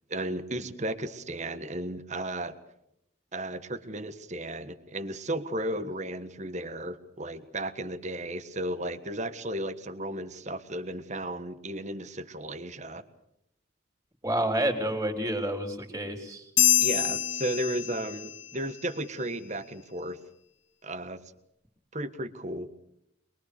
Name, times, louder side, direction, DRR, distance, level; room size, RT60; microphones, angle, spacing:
voice 1, 0.1-2.5 3.3-13.0 16.8-20.2 20.8-21.2 21.9-22.7, right 1 dB, 35° right, 12 dB, 1.4 m, -34 dB
voice 2, 14.2-16.5, right 1 dB, 15° right, 4 dB, 3.5 m, -29 dB
sound 1, 16.6-18.4, left 11 dB, 65° left, 1.1 m, -25 dB
23.5 x 22.5 x 6.8 m, 0.78 s
head